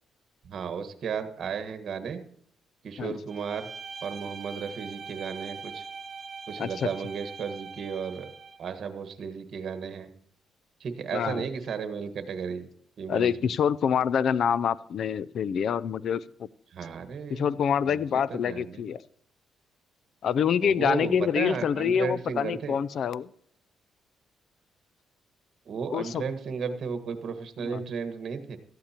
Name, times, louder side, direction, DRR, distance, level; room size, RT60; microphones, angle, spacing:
voice 1, 0.4-2.2 2.8-3.7 4.0-5.8 6.5-8.3 8.6-10.1 10.8-12.7 13.0-13.5 16.7-17.5 17.8-18.0 18.3-18.8 20.6-22.8 25.6-28.6, right 6 dB, 60° right, 8 dB, 1.5 m, -34 dB
Bowed string instrument, 3.3-8.6, right 5 dB, 40° right, 2.5 m, -42 dB
voice 2, 11.1-11.4 13.1-16.2 17.3-19.0 20.2-23.3 25.9-26.2 27.7-27.8, left 7 dB, 60° left, 19 dB, 0.4 m, -26 dB
17.5 x 13.5 x 2.9 m, 0.64 s
cardioid pair, 90°, 0 cm